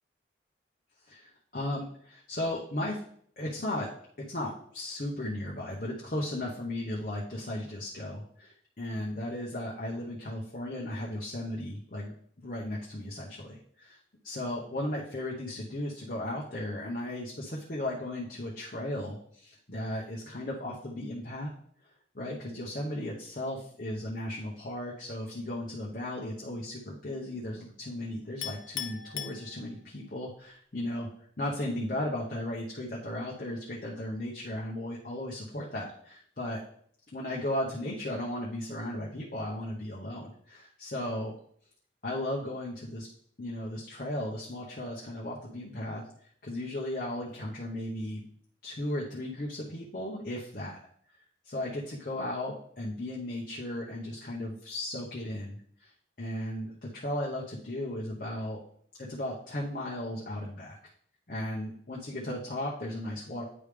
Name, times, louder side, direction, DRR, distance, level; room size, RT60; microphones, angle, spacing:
voice 1, 1.1-3.0 3.4-3.9 4.3-14.0 14.2-21.5 22.1-31.1 31.4-36.6 37.1-41.3 42.0-43.1 43.4-46.0 46.4-48.2 48.6-50.8 51.4-55.9 56.2-58.6 59.1-60.8 61.3-63.4, left 1 dB, 45° left, -4 dB, 0.9 m, -36 dB
Chink clink, 28.4-30.1, left 10 dB, 85° left, 0.6 m, -39 dB
9.7 x 3.4 x 3.3 m, 0.62 s
head